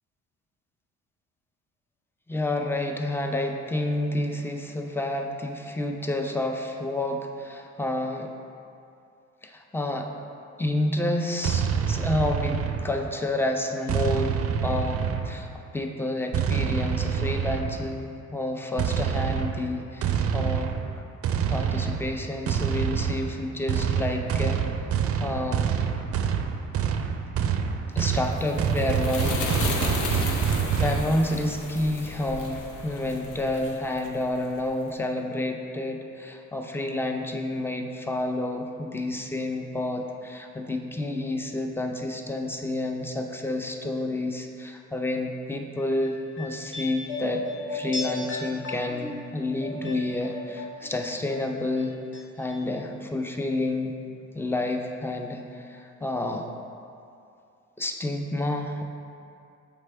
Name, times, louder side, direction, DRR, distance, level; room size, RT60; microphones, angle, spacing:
voice 1, 2.3-8.3 9.4-10.1 10.6-20.7 21.5-24.6 25.2-25.7 27.9-29.5 30.1-30.4 30.8-47.4 47.7-54.0 54.3-56.5 57.8-58.8, left 1 dB, 10° left, 4 dB, 0.5 m, -29 dB
sound 1, 11.4-13.2 13.9-15.6 16.3-18.0 18.8-31.0, right 8 dB, 50° right, 0.4 m, -27 dB
sound 2, 28.1-34.7, left 3 dB, 80° left, 0.8 m, -34 dB
sound 3, 45.8-51.0 51.3-52.2 52.5-52.6, left 2 dB, 40° left, 1.0 m, -36 dB
6.8 x 4.6 x 3.3 m, 2.6 s
cardioid pair, 90°, 30 cm